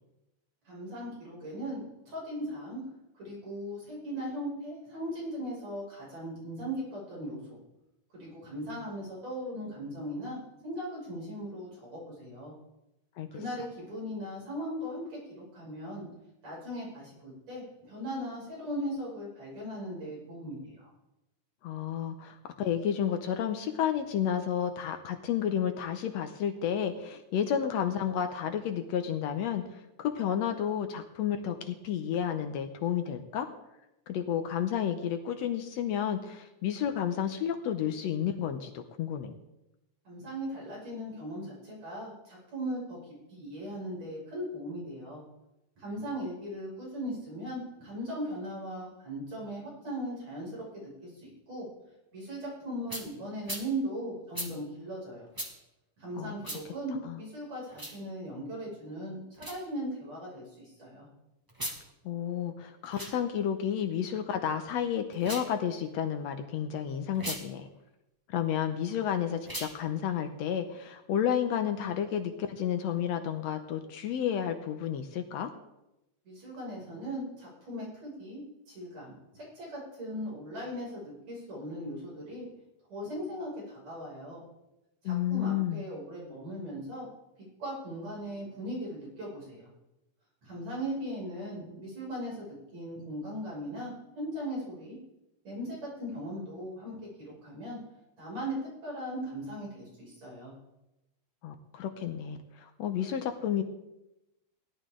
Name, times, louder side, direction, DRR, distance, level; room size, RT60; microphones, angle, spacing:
voice 1, 0.7-2.8 3.1-7.6 8.1-12.5 13.3-16.1 16.4-20.9 40.0-45.2 45.8-51.7 52.1-55.3 56.0-61.1 76.2-82.5 82.9-84.4 85.0-87.1 87.6-89.7 90.4-95.0 95.4-97.8 98.2-100.5, equal, 65° right, -6 dB, 7.5 m, -38 dB
voice 2, 21.6-33.5 34.1-39.3 56.2-56.3 57.0-57.2 62.1-67.7 68.3-75.5 85.1-85.8 101.4-103.6, left 9 dB, 70° left, 7 dB, 1.8 m, -31 dB
sound 1, 52.9-53.1 53.4-53.7 54.3-54.5 55.3-55.5 56.4-56.6 57.7-58.0 59.3-59.6 61.5-61.8 62.8-63.1 65.1-65.5 67.1-67.4 69.4-69.7, right 1 dB, 15° right, 0.8 m, -37 dB
17.0 x 11.0 x 3.8 m, 0.93 s
omnidirectional pair, 3.3 m